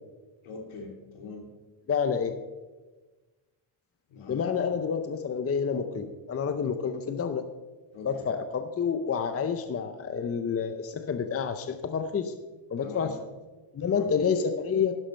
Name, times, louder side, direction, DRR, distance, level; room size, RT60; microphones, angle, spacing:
voice 1, 0.4-1.5 4.1-4.4 7.9-8.1 12.8-13.1 13.8-14.1, left 4 dB, 75° left, 2 dB, 2.9 m, -42 dB
voice 2, 1.9-2.3 4.3-7.4 8.0-12.3 12.7-13.2 13.7-14.9, left 6 dB, 30° left, 9 dB, 0.7 m, -29 dB
12.0 x 10.5 x 4.4 m, 1.2 s
cardioid pair, 135°, 49 cm